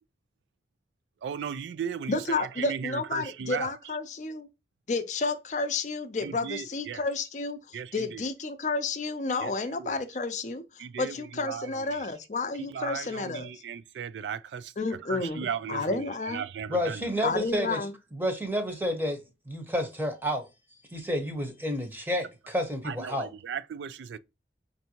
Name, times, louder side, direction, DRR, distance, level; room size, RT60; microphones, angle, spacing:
voice 1, 1.2-3.7 6.2-7.0 7.7-8.2 9.4-9.5 9.8-10.0 10.8-11.2 11.4-12.1 12.6-14.7 15.1-17.0 22.8-24.2, right 7 dB, 85° right, 0.3 m, -36 dB
voice 2, 2.1-4.5 4.9-10.6 11.0-13.5 14.8-16.4 17.2-17.9, left 3 dB, 45° left, 0.5 m, -31 dB
voice 3, 16.7-17.8 18.1-19.2 19.5-20.5 20.9-23.3, equal, 10° right, 0.9 m, -30 dB
5.4 x 2.6 x 2.8 m
head